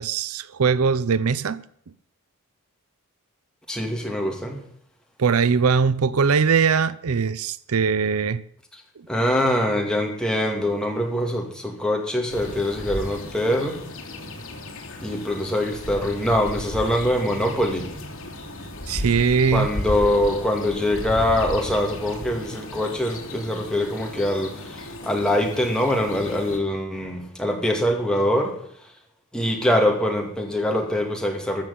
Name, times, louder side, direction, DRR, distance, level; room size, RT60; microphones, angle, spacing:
voice 1, 0.0-1.6 5.2-8.4 18.9-19.7, right 5 dB, 80° right, 0.6 m, -21 dB
voice 2, 3.7-4.6 9.1-13.8 15.0-17.9 19.5-28.6 29.3-31.6, left 1 dB, 5° left, 2.4 m, -23 dB
sound 1, 12.3-26.6, left 1 dB, 65° left, 3.1 m, -35 dB
13.5 x 7.0 x 8.6 m
head